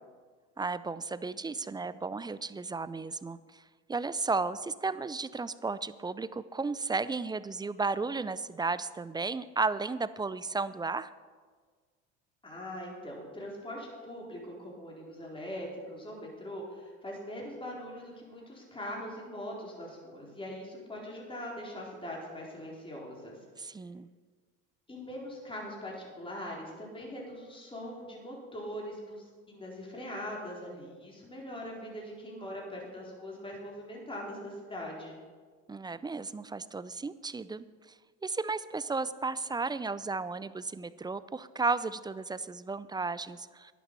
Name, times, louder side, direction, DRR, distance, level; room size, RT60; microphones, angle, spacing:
voice 1, 0.6-3.6 3.9-11.1 23.6-24.1 35.7-37.6 38.2-43.7, right 4 dB, 15° right, 16 dB, 0.4 m, -34 dB
voice 2, 12.4-23.4 24.9-35.1, equal, 15° left, -3 dB, 4.2 m, -42 dB
11.0 x 9.3 x 6.8 m, 1.5 s
hypercardioid pair, 80°, 34 cm